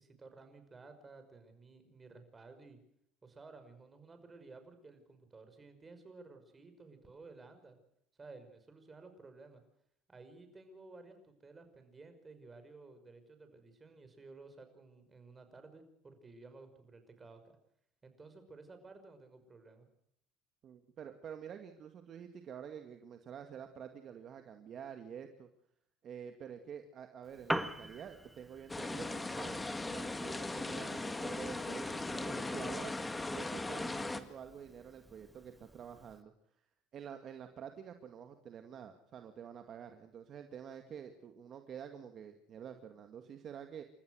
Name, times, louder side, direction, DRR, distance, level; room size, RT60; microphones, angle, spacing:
voice 1, 0.0-2.8 3.2-7.8 8.2-9.6 10.1-17.4 18.0-19.9, right 3 dB, 20° right, 8 dB, 5.6 m, -55 dB
voice 2, 20.6-25.5 26.0-33.0 33.3-36.3 36.9-43.8, right 8 dB, 45° right, 6 dB, 2.1 m, -48 dB
Piano, 27.2-36.2, right 1 dB, ahead, 1.7 m, -46 dB
sound 1, 28.7-34.2, left 2 dB, 15° left, 2.0 m, -38 dB
30.0 x 14.5 x 6.4 m, 0.74 s
supercardioid pair, 100°, 0 cm